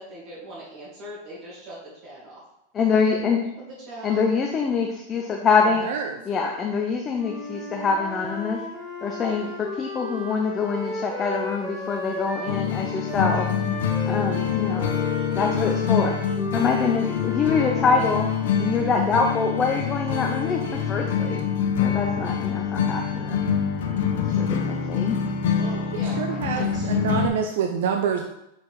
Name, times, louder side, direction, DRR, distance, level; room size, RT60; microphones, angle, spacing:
voice 1, 0.0-2.4 3.6-4.2 25.5-26.9, right 1 dB, 35° right, -6 dB, 2.3 m, -40 dB
voice 2, 2.7-3.4 4.0-5.8 6.3-8.6 9.0-13.5 14.1-14.9 15.3-16.2 16.5-18.2 18.6-20.6 20.9-21.4 21.8-23.4 24.1-25.2, left 5 dB, 20° left, 1 dB, 0.7 m, -25 dB
voice 3, 5.8-6.2 26.2-28.2, right 7 dB, 70° right, 4 dB, 0.7 m, -26 dB
Wind instrument woodwind instrument, 7.1-12.6 13.1-18.9, left 2 dB, 10° right, 2.2 m, -34 dB
sound 1, 12.5-27.3, left 7 dB, 75° left, 1.1 m, -25 dB
6.0 x 4.8 x 4.8 m, 0.82 s
supercardioid pair, 160°, 0 cm